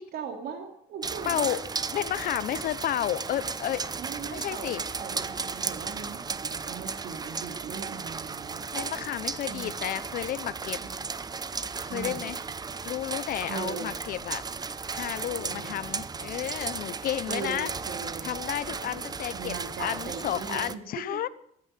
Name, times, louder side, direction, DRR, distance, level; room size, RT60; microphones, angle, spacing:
voice 1, 0.0-1.6 4.0-8.6 9.5-9.8 10.8-10.9 11.9-12.2 13.5-14.0 15.4-15.8 17.3-18.4 18.7-20.8 21.1-21.2, right 6 dB, 65° right, 3 dB, 2.6 m, -39 dB
sound 1, 1.0-20.7, right 5 dB, 25° right, 0.8 m, -35 dB
voice 2, 1.2-1.6 1.9-3.9 4.3-4.8 8.7-10.8 11.8-12.4 12.8-14.4 14.9-17.7 18.2-21.3, left 12 dB, 60° left, 16 dB, 0.9 m, -32 dB
14.0 x 9.7 x 9.4 m, 0.69 s
cardioid pair, 110°, 17 cm